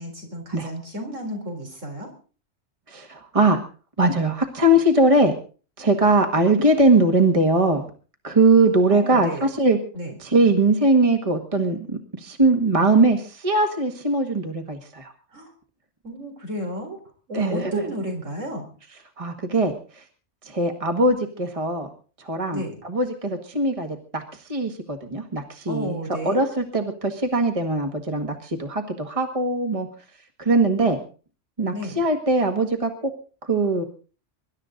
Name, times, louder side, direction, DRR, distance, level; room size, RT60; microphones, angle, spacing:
voice 1, 0.0-2.1 8.9-9.5 9.9-10.1 15.3-15.5 16.0-17.0 17.3-18.7 22.5-22.8 25.7-26.5 31.7-32.0, right 1 dB, 80° right, 3 dB, 4.7 m, -32 dB
voice 2, 2.9-3.6 4.0-5.3 5.8-7.8 8.2-9.8 10.2-15.1 17.3-17.8 19.2-20.0 20.5-21.9 22.2-24.2 24.5-26.0 26.3-29.9 30.4-31.0 31.6-33.1 33.5-33.8, right 2 dB, 25° right, 5 dB, 1.8 m, -21 dB
24.0 x 12.0 x 3.9 m, 0.38 s
omnidirectional pair, 1.3 m